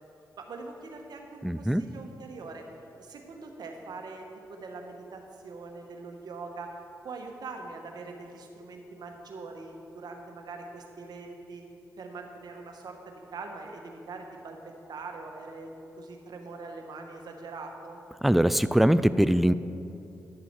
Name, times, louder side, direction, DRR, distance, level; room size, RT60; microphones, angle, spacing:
voice 1, 0.4-2.6 3.0-4.2 4.5-6.7 7.0-11.6 12.0-14.6 14.9-18.0, right 3 dB, 70° right, 3 dB, 1.1 m, -42 dB
voice 2, 1.4-1.8 18.2-19.5, equal, ahead, 14 dB, 0.3 m, -22 dB
11.0 x 6.9 x 4.6 m, 2.7 s
supercardioid pair, 45°, 7 cm